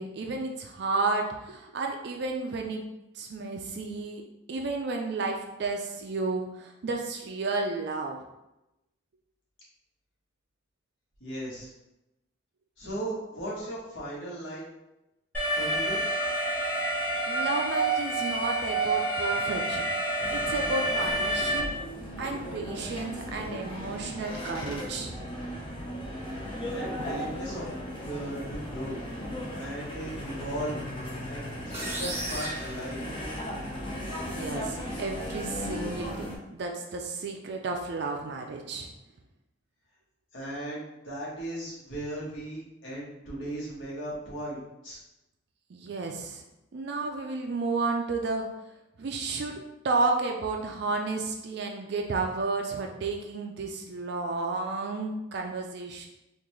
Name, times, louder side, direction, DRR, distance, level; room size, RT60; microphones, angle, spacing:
voice 1, 0.0-2.8 3.2-4.2 4.5-8.2 17.3-19.9 20.3-21.7 22.2-25.1 34.3-38.9 45.7-46.4 46.7-48.4 49.0-56.1, right 3 dB, 55° right, 2 dB, 0.4 m, -32 dB
voice 2, 11.2-11.7 12.8-14.7 15.6-16.0 26.7-27.7 28.0-29.0 29.5-30.8 31.2-33.0 40.3-45.0, right 1 dB, 70° left, -6 dB, 1.3 m, -37 dB
Alarm, 15.3-21.6, right 1 dB, 10° left, 1.0 m, -28 dB
sound 1, 20.2-36.4, equal, 25° left, 0.5 m, -37 dB
sound 2, 31.7-33.7, right 1 dB, 10° right, 0.7 m, -36 dB
3.7 x 2.5 x 3.1 m, 0.91 s
head